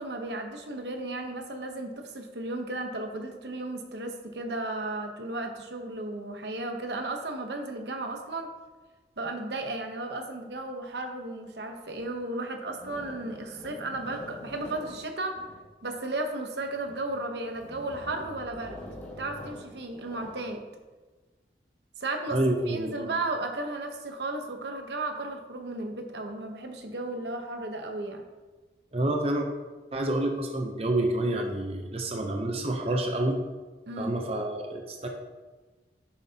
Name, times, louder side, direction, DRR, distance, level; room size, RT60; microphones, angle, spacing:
voice 1, 0.0-8.5 9.2-15.3 15.8-18.8 19.2-20.6 22.0-22.4 22.7-28.2 33.9-34.2, right 2 dB, 75° right, 4 dB, 1.0 m, -34 dB
sound 1, 12.0-12.1 12.7-16.0 16.6-17.1 17.5-20.5, left 1 dB, 10° left, 1.8 m, -45 dB
voice 2, 22.3-23.2 28.9-29.5 29.9-33.4 34.0-35.1, right 1 dB, 35° right, 2 dB, 0.7 m, -28 dB
9.9 x 7.2 x 2.9 m, 1.3 s
head